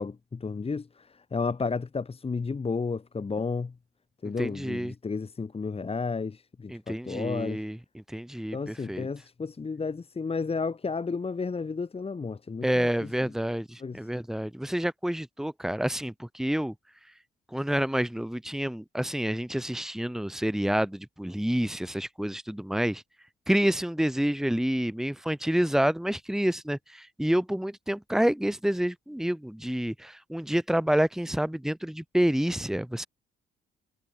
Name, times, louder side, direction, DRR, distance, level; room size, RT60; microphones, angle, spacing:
voice 1, 0.0-3.7 4.2-7.6 8.5-13.1 13.8-14.0, left 4 dB, 30° left, 2.4 m, -32 dB
voice 2, 4.4-4.9 6.7-9.1 12.6-16.7 17.5-23.0 23.5-33.1, equal, ahead, 2.3 m, -28 dB
cardioid pair, 90°, 20 cm